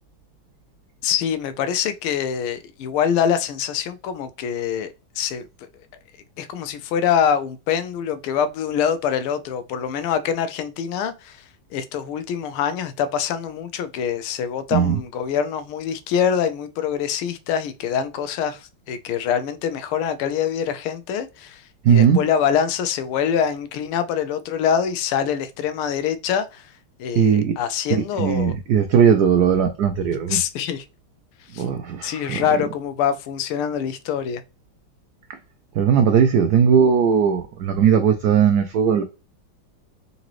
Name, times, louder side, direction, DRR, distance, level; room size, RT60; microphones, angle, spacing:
voice 1, 1.0-5.4 6.4-11.4 11.7-21.6 21.9-26.7 27.0-28.5 30.3-30.8 31.5-31.6 32.0-34.4, left 8 dB, 90° left, 1.5 m, -24 dB
voice 2, 21.8-22.3 27.1-27.6 27.9-30.4 31.6-32.7 35.7-39.0, right 7 dB, 85° right, 0.8 m, -18 dB
4.0 x 3.8 x 3.0 m
omnidirectional pair, 2.3 m